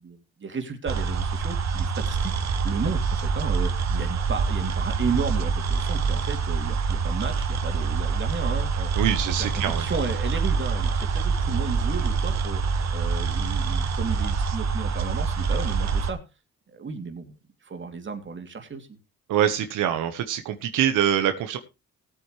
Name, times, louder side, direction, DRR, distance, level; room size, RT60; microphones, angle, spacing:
voice 1, 0.0-2.3 2.6-8.9 9.4-9.5 9.8-12.6 12.9-16.2 16.7-17.4 17.6-19.0, right 5 dB, 40° right, 5 dB, 2.9 m, -33 dB
sound 1, 0.9-16.1, right 4 dB, 60° right, 1.7 m, -26 dB
voice 2, 9.0-9.8 19.3-21.6, right 10 dB, 90° right, 7 dB, 1.3 m, -24 dB
18.5 x 8.6 x 3.2 m, 0.27 s
cardioid pair, 90°, 30 cm